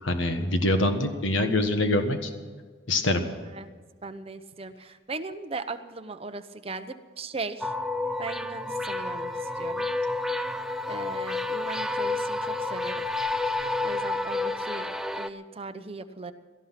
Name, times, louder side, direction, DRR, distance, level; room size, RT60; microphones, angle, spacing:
voice 1, 0.0-2.3 2.9-3.2, left 1 dB, 90° left, 7 dB, 1.6 m, -24 dB
voice 2, 4.0-7.7 8.2-9.9 10.9-13.0 13.8-16.3, right 3 dB, 30° right, 9 dB, 0.9 m, -38 dB
sound 1, 7.6-15.3, left 2 dB, 5° right, 0.5 m, -30 dB
17.5 x 13.5 x 5.9 m, 1.5 s
head